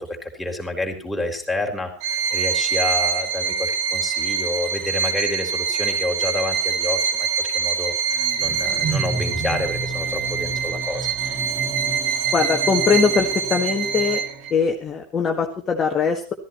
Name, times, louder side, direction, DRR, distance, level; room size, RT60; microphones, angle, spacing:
voice 1, 0.0-11.1, left 2 dB, 5° left, 1 dB, 3.8 m, -29 dB
Bowed string instrument, 2.0-14.5, right 6 dB, 50° right, 1.7 m, -24 dB
sound 1, 8.2-14.5, right 3 dB, 20° right, 2.8 m, -32 dB
voice 2, 12.3-14.2 14.5-16.3, left 5 dB, 20° left, 1 dB, 1.7 m, -21 dB
15.0 x 14.5 x 4.3 m, 0.37 s
figure-of-eight pair, 90°, 0 cm